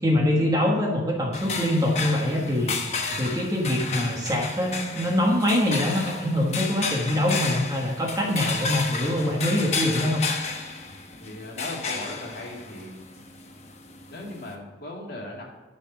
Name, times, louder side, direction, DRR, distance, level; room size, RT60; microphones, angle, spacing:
voice 1, 0.0-2.7 3.2-10.2, left 1 dB, 20° right, -1 dB, 1.3 m, -24 dB
sound 1, 1.3-14.5, left 4 dB, 35° left, 0.9 m, -32 dB
voice 2, 11.2-13.0 14.1-15.4, left 1 dB, 55° left, -3 dB, 2.3 m, -38 dB
10.5 x 4.2 x 6.0 m, 1.3 s
head